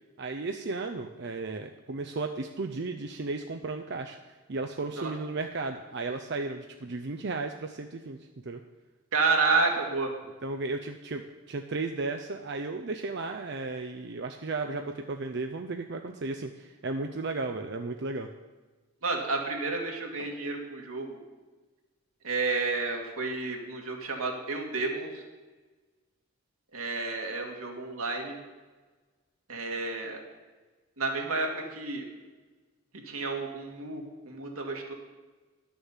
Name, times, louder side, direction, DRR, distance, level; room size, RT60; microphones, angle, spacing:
voice 1, 0.2-4.2 4.5-8.2 8.4-8.6 10.4-18.3, right 3 dB, 55° right, 5 dB, 0.6 m, -34 dB
voice 2, 9.1-10.1 19.0-21.2 22.2-25.2 26.7-28.4 29.5-30.2 31.0-32.1 33.1-34.9, right 3 dB, 85° right, 1 dB, 2.1 m, -30 dB
11.0 x 7.0 x 7.3 m, 1.3 s
head